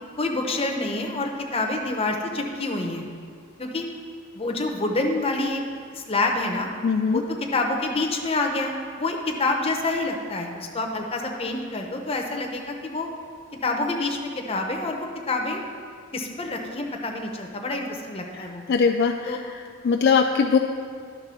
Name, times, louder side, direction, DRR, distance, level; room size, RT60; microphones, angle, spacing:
voice 1, 0.2-3.1 3.6-3.9 4.3-5.6 5.9-6.7 7.1-8.7 9.0-13.1 13.6-15.6 16.1-18.6 19.3-19.4, left 2 dB, 30° left, 2 dB, 0.8 m, -27 dB
voice 2, 6.8-7.2 18.3-19.4 19.8-20.6, left 5 dB, 50° left, 3 dB, 0.3 m, -21 dB
10.5 x 3.7 x 6.1 m, 2.1 s
head